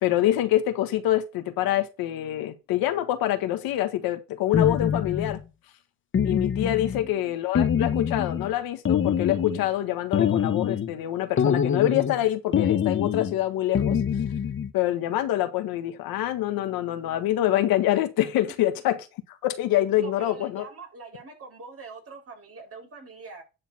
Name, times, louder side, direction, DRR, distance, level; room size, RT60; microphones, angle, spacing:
voice 1, 0.0-5.4 6.2-14.0 14.7-19.0 19.4-20.6, left 13 dB, 70° left, 1.6 m, -25 dB
sound 1, 4.5-5.4 6.1-7.1 7.5-8.5 8.8-9.7 10.1-10.9 11.4-12.2 12.5-13.4 13.7-14.7, left 8 dB, 30° left, 1.0 m, -24 dB
voice 2, 7.0-7.6 20.0-23.4, right 4 dB, 40° right, 4.4 m, -44 dB
10.0 x 3.9 x 7.1 m
supercardioid pair, 95°, 37 cm